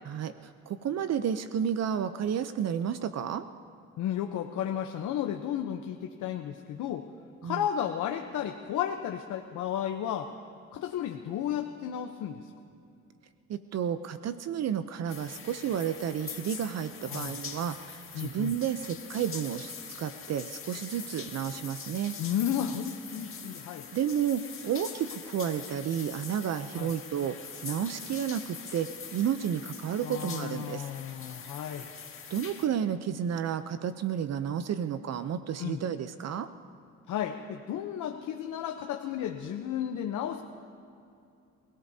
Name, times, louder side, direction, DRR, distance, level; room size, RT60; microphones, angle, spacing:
voice 1, 0.1-3.4 7.4-7.7 13.5-22.2 23.9-27.4 27.6-30.9 32.3-36.5, right 9 dB, 60° right, 11 dB, 0.6 m, -31 dB
voice 2, 4.0-7.1 7.4-10.3 10.7-12.4 17.1-17.3 18.1-18.5 22.2-23.9 26.8-26.9 30.0-31.9 35.6-35.8 37.1-40.4, left 10 dB, 80° left, 4 dB, 0.8 m, -33 dB
sound 1, 15.1-32.7, left 6 dB, 45° left, 1.8 m, -43 dB
28.0 x 17.0 x 2.8 m, 2.6 s
cardioid pair, 90°, 30 cm